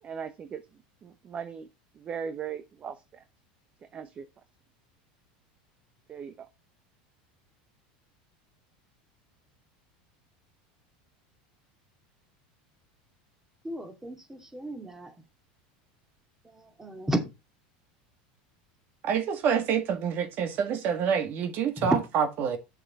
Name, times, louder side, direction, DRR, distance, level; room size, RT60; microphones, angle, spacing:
voice 1, 0.0-1.7 1.9-3.2 3.8-4.3 6.1-6.5, right 7 dB, 30° right, 0.9 m, -39 dB
voice 2, 13.6-15.1 16.5-17.3 21.8-22.0, right 1 dB, 10° right, 2.4 m, -32 dB
voice 3, 19.0-22.6, right 7 dB, 50° right, 1.8 m, -27 dB
7.1 x 6.9 x 4.1 m
supercardioid pair, 120°, 4 cm